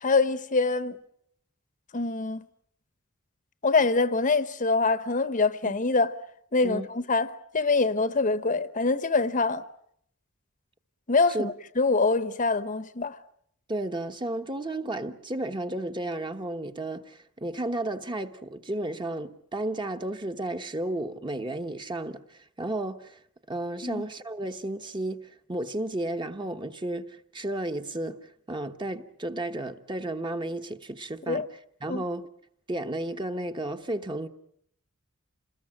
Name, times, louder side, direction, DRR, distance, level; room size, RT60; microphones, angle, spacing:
voice 1, 0.0-1.0 1.9-2.4 3.6-6.1 6.5-7.3 7.5-9.6 11.1-13.2 23.8-24.0 31.3-31.5 31.9-32.0, left 3 dB, 40° left, 1.0 m, -24 dB
voice 2, 13.7-23.2 23.5-31.5 31.8-32.3 32.7-34.3, right 1 dB, 20° right, 1.2 m, -33 dB
28.0 x 20.0 x 8.8 m
head